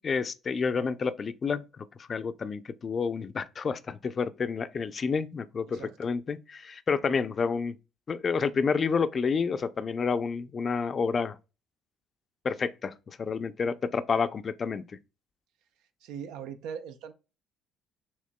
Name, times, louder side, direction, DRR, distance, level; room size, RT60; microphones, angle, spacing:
voice 1, 0.0-7.7 8.1-11.4 12.4-14.8, left 5 dB, 40° left, 0.4 m, -29 dB
voice 2, 16.0-17.1, right 7 dB, 75° right, 0.5 m, -40 dB
6.5 x 3.0 x 2.2 m
hypercardioid pair, 65°, 0 cm